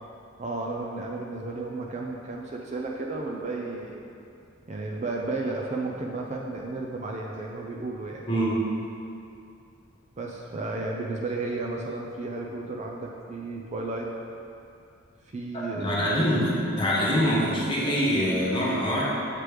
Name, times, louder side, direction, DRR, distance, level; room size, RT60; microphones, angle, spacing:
voice 1, 0.4-4.0 4.7-8.2 10.2-14.1 15.3-16.3, right 2 dB, 35° right, -1 dB, 0.4 m, -33 dB
voice 2, 8.3-8.6 15.5-19.0, equal, 25° left, -7 dB, 1.2 m, -24 dB
7.6 x 3.3 x 4.8 m, 2.6 s
head